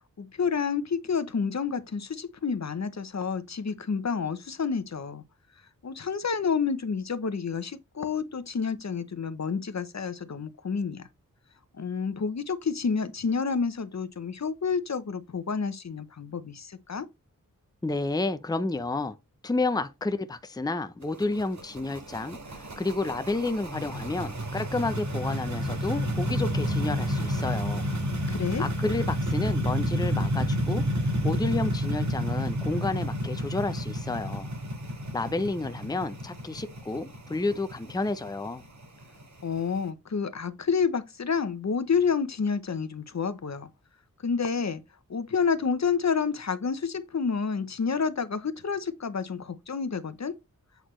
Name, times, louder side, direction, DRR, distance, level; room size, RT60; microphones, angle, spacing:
voice 1, 0.2-5.2 5.8-11.1 11.7-17.1 28.3-28.7 39.4-43.7 44.2-44.8 45.1-50.4, left 5 dB, 55° left, 0.8 m, -29 dB
voice 2, 17.8-19.2 19.4-27.8 28.6-34.5 35.1-38.6, left 2 dB, 10° left, 0.6 m, -30 dB
sound 1, 21.0-39.8, equal, 55° right, 1.8 m, -30 dB
8.0 x 4.1 x 3.1 m
wide cardioid pair, 70°, 34 cm